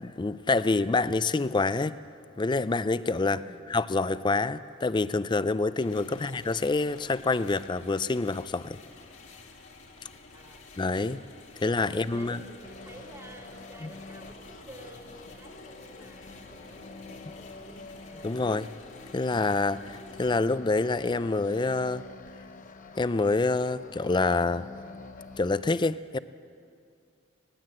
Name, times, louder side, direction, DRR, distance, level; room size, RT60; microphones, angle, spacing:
voice 1, 0.0-2.0 2.4-8.8 10.8-11.2 11.6-12.4 13.8-13.9 18.2-18.7 19.1-22.0 23.0-24.7 25.4-26.2, left 3 dB, 20° left, 15 dB, 0.4 m, -27 dB
voice 2, 3.4-3.8 6.0-6.3 10.3-10.7 11.5-18.4, right 1 dB, 20° right, 1 dB, 1.8 m, -50 dB
sound 1, 5.8-20.4, left 3 dB, 65° left, 2.3 m, -51 dB
sound 2, 12.6-25.4, left 3 dB, 40° left, 0.9 m, -47 dB
20.0 x 17.5 x 7.7 m, 2.4 s
head